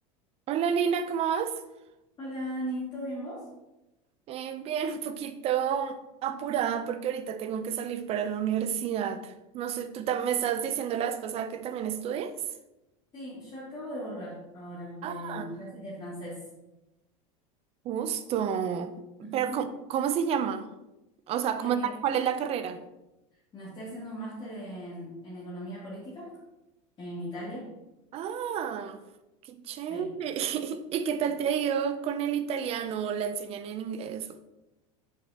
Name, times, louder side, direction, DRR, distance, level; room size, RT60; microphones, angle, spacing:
voice 1, 0.5-1.6 4.3-12.3 15.0-15.5 17.8-18.9 19.2-20.7 21.3-22.8 28.1-29.0 29.4-34.4, right 8 dB, 35° right, 0.6 m, -30 dB
voice 2, 2.2-3.5 13.1-16.4 19.2-19.6 21.6-21.9 23.5-26.4 27.0-27.7 29.9-30.1, equal, 25° left, 2.4 m, -38 dB
7.3 x 6.4 x 2.9 m
supercardioid pair, 140°, 17 cm